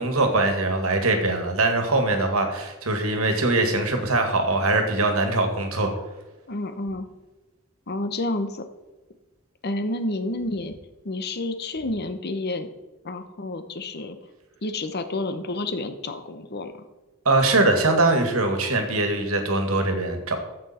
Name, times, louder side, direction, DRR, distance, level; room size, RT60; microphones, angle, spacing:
voice 1, 0.0-5.9 17.3-20.4, right 2 dB, 80° right, 5 dB, 2.0 m, -22 dB
voice 2, 6.5-7.1 7.9-8.7 9.6-10.7 11.0-12.7 13.0-14.2 14.6-16.7, left 2 dB, 50° left, 9 dB, 1.0 m, -29 dB
12.5 x 7.9 x 4.4 m, 1.1 s
head